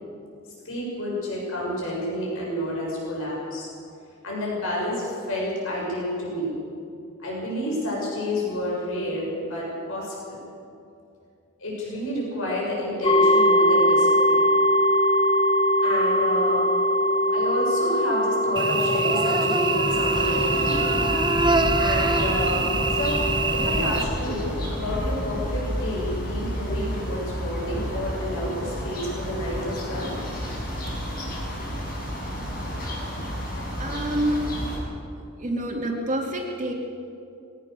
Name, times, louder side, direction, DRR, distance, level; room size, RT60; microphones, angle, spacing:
voice 1, 0.6-3.7 4.2-6.6 7.2-10.4 11.6-14.5 15.8-16.7 17.3-20.9 21.8-23.2 23.5-30.1, left 1 dB, 65° left, -4 dB, 7.2 m, -30 dB
sound 1, 13.0-23.8, equal, 25° left, 1.4 m, -22 dB
Cricket / Buzz, 18.6-24.0, right 3 dB, 20° right, 1.0 m, -25 dB
sound 2, 19.8-34.8, equal, 45° left, 6.8 m, -31 dB
voice 2, 33.8-34.4 35.4-36.7, right 1 dB, 35° right, 0 dB, 2.4 m, -28 dB
21.5 x 18.0 x 6.7 m, 2.5 s
head